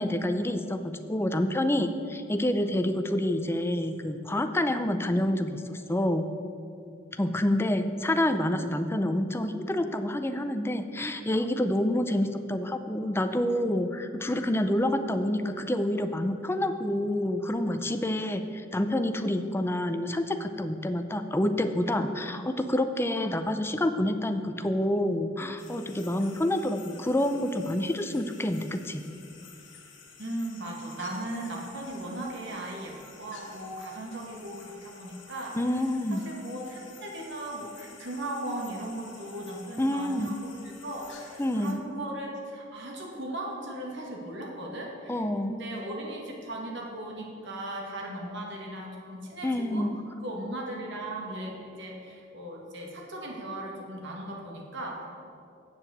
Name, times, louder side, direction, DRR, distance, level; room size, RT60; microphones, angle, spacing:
voice 1, 0.0-6.3 7.1-29.0 35.5-36.3 39.8-40.3 41.4-41.8 45.1-45.5 49.4-50.0, left 1 dB, 10° left, 8 dB, 0.5 m, -28 dB
sound 1, 25.6-41.7, left 5 dB, 65° left, 1.6 m, -51 dB
voice 2, 30.2-35.8 36.1-49.9 50.2-55.1, right 1 dB, 65° right, -1 dB, 2.0 m, -37 dB
7.9 x 7.3 x 7.8 m, 2.5 s
head